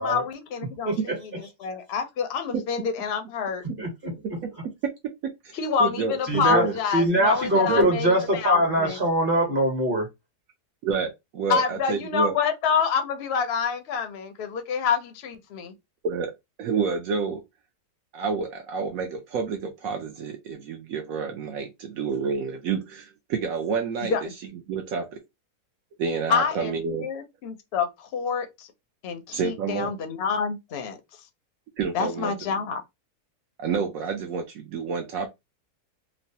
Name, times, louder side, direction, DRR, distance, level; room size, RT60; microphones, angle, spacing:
voice 1, 0.0-3.7 5.5-9.0 11.5-15.7 24.1-24.3 26.3-28.7 29.0-31.0 31.9-32.8, left 6 dB, 60° left, 0.6 m, -27 dB
voice 2, 3.8-4.1 6.3-6.6 6.9-10.1, right 1 dB, 35° right, 1.2 m, -22 dB
voice 3, 5.2-6.7 7.5-8.0 10.8-12.3 16.0-16.3 16.6-17.4 18.1-24.2 24.7-25.2 26.0-27.1 29.3-29.9 31.8-32.3 33.6-35.3, right 5 dB, 70° right, 0.9 m, -29 dB
3.1 x 2.1 x 2.7 m
omnidirectional pair, 1.6 m